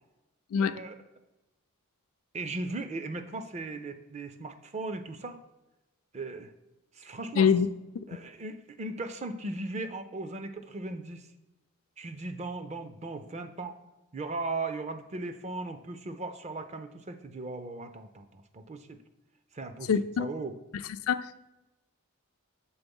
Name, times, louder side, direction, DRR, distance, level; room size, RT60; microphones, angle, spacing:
voice 1, 0.6-1.0 2.3-5.4 6.1-6.5 6.9-7.5 8.1-11.3 12.0-13.8 14.1-19.0 19.5-19.9 20.2-20.5, right 2 dB, 30° right, 0.5 m, -37 dB
voice 2, 7.4-7.7 19.9-20.3 21.1-21.5, left 7 dB, 80° left, 0.4 m, -25 dB
7.1 x 3.8 x 5.3 m
head